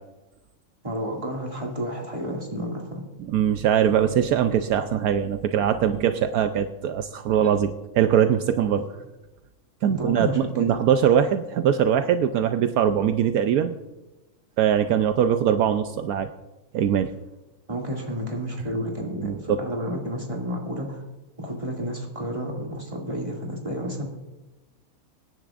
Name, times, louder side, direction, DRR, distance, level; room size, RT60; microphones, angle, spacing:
voice 1, 0.8-3.0 8.8-8.9 9.8-10.7 17.7-21.0 21.4-24.0, equal, 20° right, -1 dB, 2.4 m, -31 dB
voice 2, 3.3-8.8 9.8-13.7 14.6-16.3 16.7-17.1 19.2-19.6, right 9 dB, 75° right, 8 dB, 1.1 m, -22 dB
25.0 x 10.5 x 2.5 m, 1.0 s
omnidirectional pair, 1.6 m